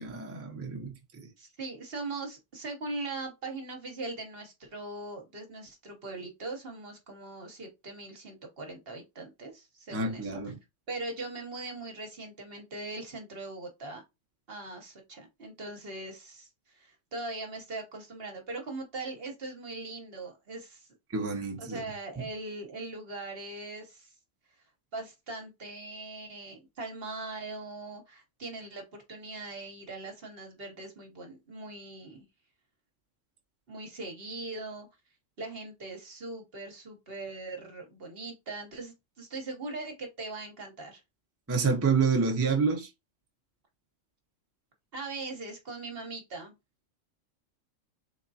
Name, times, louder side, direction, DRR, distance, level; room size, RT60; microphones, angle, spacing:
voice 1, 0.0-1.2 9.9-10.6 21.1-21.8 41.5-42.9, right 5 dB, 15° right, 0.7 m, -28 dB
voice 2, 1.4-10.4 10.9-14.0 14.5-20.9 21.6-24.1 24.9-32.3 33.7-34.9 35.4-41.0 44.9-46.5, right 2 dB, 50° right, 1.1 m, -40 dB
3.7 x 3.6 x 2.7 m
omnidirectional pair, 1.3 m